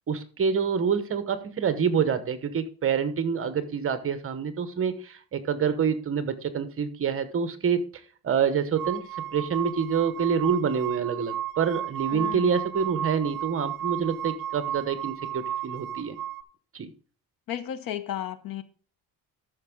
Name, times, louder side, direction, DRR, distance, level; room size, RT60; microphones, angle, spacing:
voice 1, 0.1-7.8 8.2-9.0 9.3-16.1 16.7-16.9, right 6 dB, 35° right, 1.0 m, -27 dB
sound 1, 8.8-16.4, right 11 dB, 60° right, 0.6 m, -34 dB
voice 2, 12.1-12.6 17.5-18.6, left 11 dB, 65° left, 0.9 m, -34 dB
12.5 x 6.3 x 3.6 m
cardioid pair, 160°, 36 cm